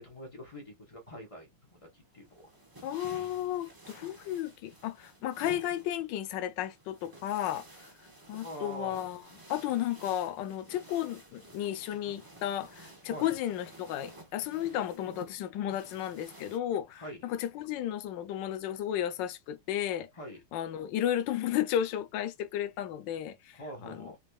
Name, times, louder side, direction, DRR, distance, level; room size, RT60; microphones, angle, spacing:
voice 1, 0.0-2.5 8.4-9.0 13.0-13.3 17.0-17.2 20.1-20.4 23.5-24.2, equal, 30° left, 0.5 m, -44 dB
sound 1, 1.7-16.6, right 1 dB, 20° right, 0.5 m, -53 dB
voice 2, 2.8-7.6 8.3-9.2 9.5-20.1 20.5-24.1, left 11 dB, 75° left, 1.1 m, -33 dB
4.1 x 3.2 x 2.3 m
omnidirectional pair, 2.4 m